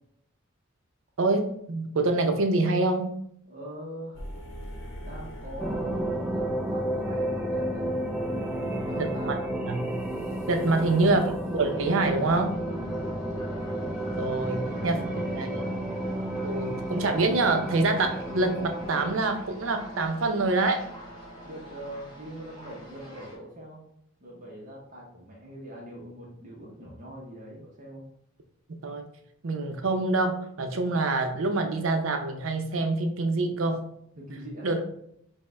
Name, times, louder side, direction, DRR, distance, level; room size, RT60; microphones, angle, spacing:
voice 1, 1.2-3.1 9.0-9.4 9.7-9.8 10.5-12.5 14.2-15.0 15.4-15.6 16.4-20.8 28.8-29.1 29.4-33.9 34.6-34.8, right 3 dB, 80° right, 6 dB, 0.6 m, -26 dB
voice 2, 3.5-4.3 5.0-8.0 8.4-9.5 10.6-11.0 12.6-13.3 14.4-15.7 21.4-23.8 24.2-28.1 34.2-34.7, equal, 40° right, -3 dB, 0.7 m, -43 dB
sound 1, 4.1-23.3, equal, 65° left, 0.7 m, -44 dB
sound 2, 5.6-19.1, right 1 dB, 5° right, 0.4 m, -32 dB
sound 3, 11.4-23.4, equal, 20° left, 1.1 m, -50 dB
5.1 x 2.1 x 3.4 m, 0.72 s
head